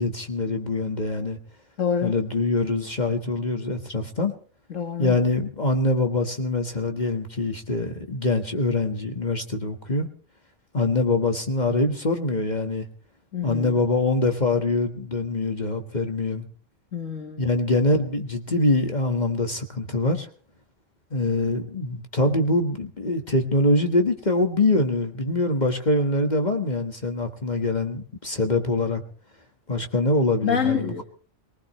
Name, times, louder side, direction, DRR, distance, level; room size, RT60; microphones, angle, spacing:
voice 1, 0.0-1.4 2.0-4.3 5.0-10.1 10.7-12.9 13.4-16.5 17.4-20.3 21.1-29.0 29.7-30.9, left 2 dB, 35° left, 5 dB, 1.6 m, -24 dB
voice 2, 1.8-2.2 4.7-5.2 13.3-13.8 16.9-17.5 30.4-31.0, left 7 dB, 85° left, 5 dB, 2.1 m, -27 dB
22.5 x 19.5 x 3.2 m, 0.42 s
omnidirectional pair, 1.3 m